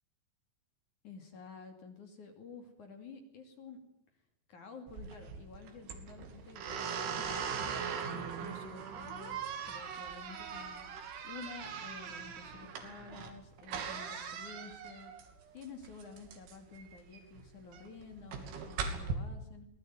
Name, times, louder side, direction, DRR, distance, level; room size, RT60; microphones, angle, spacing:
voice 1, 1.0-3.8 4.5-15.1 15.5-19.7, left 4 dB, 45° left, 5 dB, 3.5 m, -51 dB
sound 1, 4.9-19.1, right 6 dB, 75° right, 5.2 m, -40 dB
25.0 x 19.5 x 9.3 m, 0.77 s
omnidirectional pair, 5.8 m